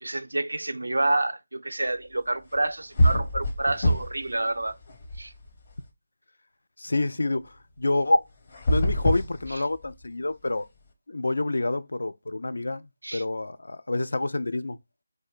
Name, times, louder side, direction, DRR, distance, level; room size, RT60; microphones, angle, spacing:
voice 1, 0.0-4.8 5.2-5.3 9.5-9.6 13.0-13.2, right 2 dB, 75° right, 0.4 m, -28 dB
sound 1, 2.6-2.7 3.0-4.3 4.6-5.7 8.5-10.1, equal, 40° left, 0.7 m, -25 dB
voice 2, 6.8-8.2 8.7-10.7 11.1-12.8 13.1-14.8, left 2 dB, 70° left, 0.3 m, -27 dB
2.5 x 2.1 x 3.5 m
figure-of-eight pair, 160°, 0 cm